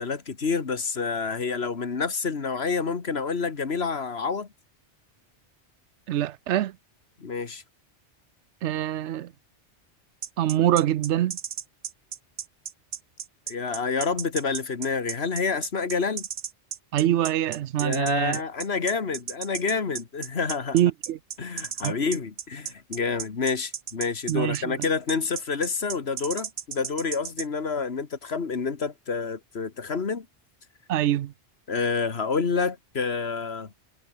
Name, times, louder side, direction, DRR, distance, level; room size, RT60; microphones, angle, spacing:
voice 1, 0.0-4.5 7.2-7.6 13.5-16.3 17.8-20.8 21.4-30.3 31.7-33.7, left 5 dB, 65° left, 2.0 m, -28 dB
voice 2, 6.1-6.8 8.6-9.3 10.4-11.4 16.9-18.4 20.7-21.2 21.8-21.9 24.3-24.8 30.9-31.3, right 12 dB, 80° right, 0.9 m, -24 dB
sound 1, 10.2-27.5, right 8 dB, 60° right, 1.1 m, -34 dB
omnidirectional pair, 1.2 m